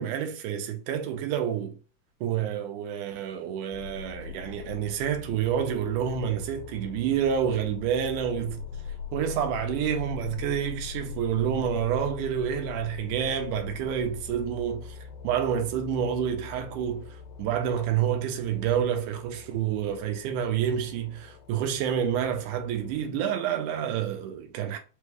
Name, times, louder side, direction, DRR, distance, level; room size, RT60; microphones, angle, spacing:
voice 1, 0.0-1.8 2.2-8.7 9.1-15.0 15.2-24.8, right 9 dB, 85° right, 2.2 m, -28 dB
sound 1, 3.7-23.1, left 7 dB, 80° left, 2.2 m, -42 dB
5.3 x 2.3 x 3.2 m
omnidirectional pair, 3.6 m